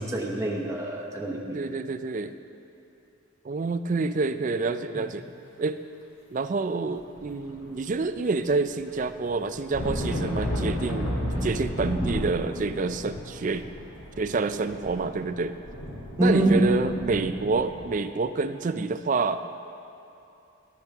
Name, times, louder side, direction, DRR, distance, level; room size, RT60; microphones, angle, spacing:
voice 1, 0.0-1.6 5.0-5.1 16.2-16.6, right 1 dB, 15° right, -1 dB, 0.8 m, -25 dB
voice 2, 1.5-2.4 3.4-5.3 5.6-5.8 6.3-13.6 14.2-15.6 16.2-19.6, right 4 dB, 35° right, 11 dB, 0.3 m, -28 dB
sound 1, 7.1-8.0 8.3-17.9, equal, 80° left, 2.3 m, -33 dB
13.5 x 12.0 x 3.5 m, 2.8 s
head